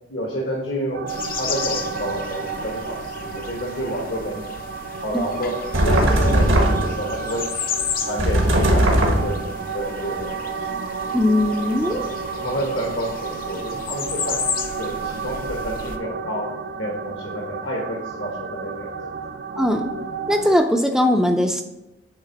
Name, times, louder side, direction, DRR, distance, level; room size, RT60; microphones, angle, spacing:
voice 1, 0.1-1.1 1.4-4.5 5.0-5.6 5.8-7.5 8.0-10.7 11.9-12.0 12.3-14.4 14.8-19.1, equal, 65° left, -1 dB, 1.3 m, -29 dB
sound 1, 0.9-20.6, right 5 dB, 55° right, 0.4 m, -32 dB
Quiet Spring Woodland Ambience, 1.1-16.0, left 6 dB, 45° left, 0.7 m, -33 dB
sound 2, 5.7-7.1 8.2-9.5, right 1 dB, 80° right, 1.4 m, -18 dB
voice 2, 11.1-12.0 19.6-19.9 20.3-21.6, left 1 dB, ahead, 4 dB, 0.5 m, -19 dB
8.9 x 3.7 x 5.4 m, 0.95 s
head